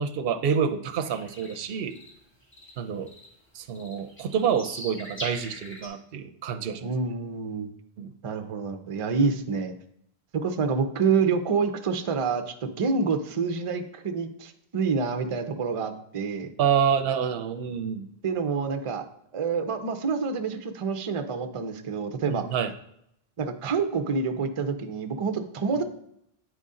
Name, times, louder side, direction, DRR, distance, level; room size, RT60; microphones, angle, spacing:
voice 1, 0.0-2.0 2.8-3.1 3.5-6.9 8.0-8.1 16.6-18.1 22.3-22.7, right 7 dB, 70° right, 8 dB, 0.8 m, -27 dB
sound 1, 0.9-2.1 2.4-3.3 3.7-5.9, equal, 10° left, 1.5 m, -41 dB
voice 2, 6.8-7.7 8.2-9.7 10.4-16.5 18.2-19.0 19.3-22.5 23.4-25.8, right 5 dB, 40° right, 8 dB, 0.5 m, -27 dB
9.0 x 4.0 x 3.7 m, 0.75 s
omnidirectional pair, 1.1 m